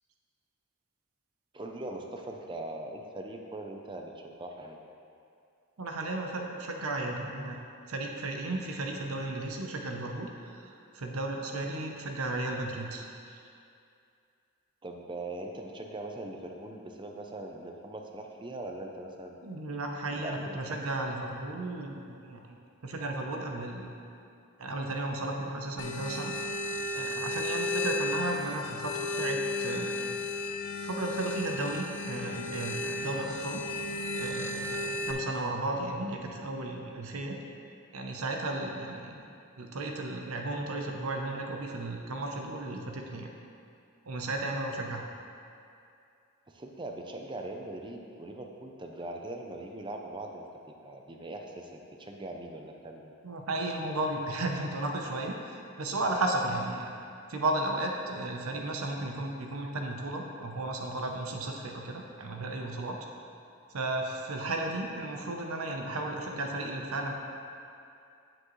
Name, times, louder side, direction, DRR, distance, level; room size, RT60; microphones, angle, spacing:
voice 1, 1.5-4.8 14.8-19.4 20.1-20.8 46.5-50.4 50.8-53.1, right 2 dB, 20° right, 2 dB, 0.6 m, -41 dB
voice 2, 5.8-7.6 7.9-13.4 19.4-22.6 22.8-23.9 24.6-26.3 26.9-30.2 30.8-33.6 34.2-37.4 37.9-39.3 39.6-43.3 44.1-45.0 53.2-56.9 57.3-63.0 63.7-67.1, right 2 dB, 85° right, 2 dB, 0.8 m, -34 dB
sound 1, 25.8-35.1, left 2 dB, 55° left, 0.6 m, -34 dB
8.9 x 7.6 x 3.2 m, 2.5 s
head